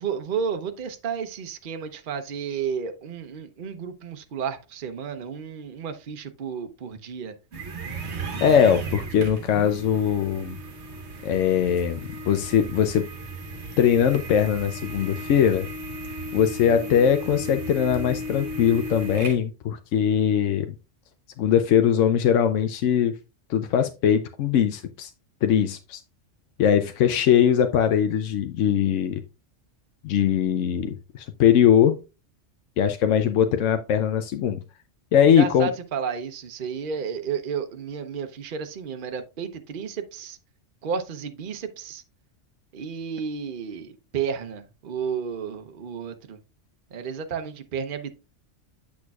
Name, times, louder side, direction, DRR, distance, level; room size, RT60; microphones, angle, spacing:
voice 1, 0.0-7.3 16.6-17.0 35.3-40.4 40.8-42.0 42.7-46.4 46.9-48.1, right 6 dB, 50° right, 0.9 m, -32 dB
sound 1, 7.5-19.4, right 1 dB, 65° right, 1.3 m, -35 dB
voice 2, 8.4-10.6 11.2-13.0 13.8-15.7 16.3-20.7 21.4-23.1 23.5-25.1 25.4-26.0 26.6-29.2 30.0-31.9 32.8-34.6 35.1-35.7, left 8 dB, 85° left, 1.0 m, -21 dB
8.4 x 6.3 x 2.3 m
omnidirectional pair, 1.3 m